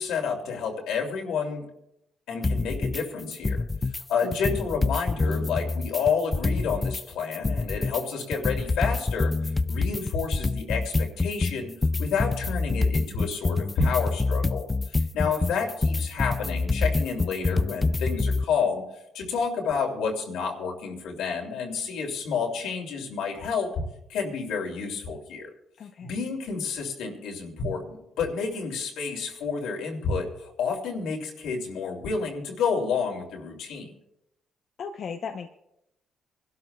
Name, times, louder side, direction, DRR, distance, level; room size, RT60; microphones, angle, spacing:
voice 1, 0.0-1.7 2.3-3.6 4.1-9.3 9.7-11.7 12.0-18.8 19.1-23.7 24.1-25.5 26.0-33.9, left 5 dB, 85° left, 1 dB, 2.6 m, -30 dB
sound 1, 2.4-3.0 3.3-4.0 4.3-7.0 7.3-18.4, left 3 dB, 20° left, 0.4 m, -26 dB
voice 2, 4.2-4.5 15.2-15.5 25.8-26.2 34.8-35.5, left 6 dB, 60° left, 4 dB, 0.7 m, -37 dB
26.0 x 12.0 x 2.3 m, 0.83 s
cardioid pair, 90°, 0 cm